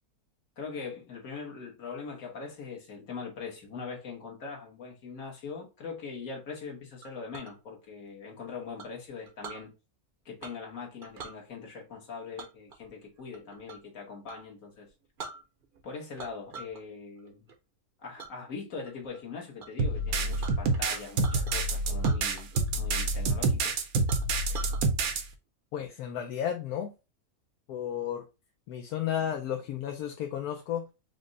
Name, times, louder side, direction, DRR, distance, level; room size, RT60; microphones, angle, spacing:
voice 1, 0.6-9.7 10.2-14.9 15.8-17.5 18.0-22.5 22.7-23.7, left 5 dB, 65° left, 1.6 m, -41 dB
Chink clink, 7.0-7.5 8.8-9.6 10.4-10.7 11.0-11.4 12.4-13.9 14.2-14.4 14.9-15.0 15.2-15.8 16.2-16.8 17.2-17.5 18.2-18.3 18.8-19.2 19.6-19.7 19.9-21.6 22.0-22.8 23.0-23.1 23.6-23.7 24.1-24.8, right 5 dB, 50° right, 0.7 m, -44 dB
sound 1, 19.8-25.2, right 3 dB, 75° right, 1.2 m, -27 dB
voice 2, 25.7-26.9 27.7-28.3 28.7-30.9, left 9 dB, 80° left, 1.1 m, -33 dB
5.0 x 2.1 x 3.8 m
omnidirectional pair, 1.6 m